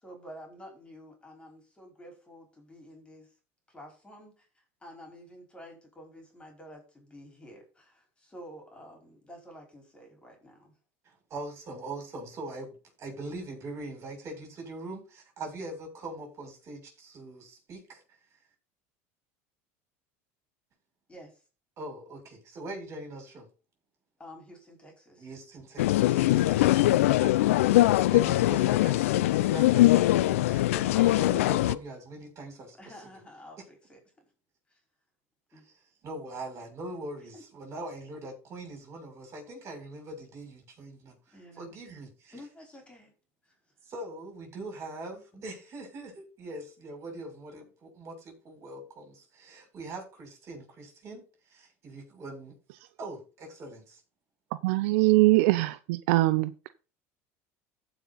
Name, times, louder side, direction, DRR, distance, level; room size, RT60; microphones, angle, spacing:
voice 1, 0.0-3.3 3.7-4.5 4.8-10.7 21.1-21.4 24.2-25.3 30.9-31.0 32.8-34.0 34.7-34.8 35.5-35.7 37.3-37.4 41.3-41.7 42.3-43.1 43.5-43.6 45.3-45.5, equal, 15° left, 4.9 m, -50 dB
voice 2, 11.0-18.0 21.8-23.5 25.2-32.7 35.5-35.7 36.0-42.3 43.8-52.6 53.0-54.0, right 2 dB, 40° right, 6.7 m, -42 dB
sound 1, 25.8-31.7, left 16 dB, 90° left, 0.5 m, -22 dB
voice 3, 54.6-56.7, right 19 dB, 75° right, 0.6 m, -22 dB
15.0 x 5.7 x 4.2 m
supercardioid pair, 115°, 7 cm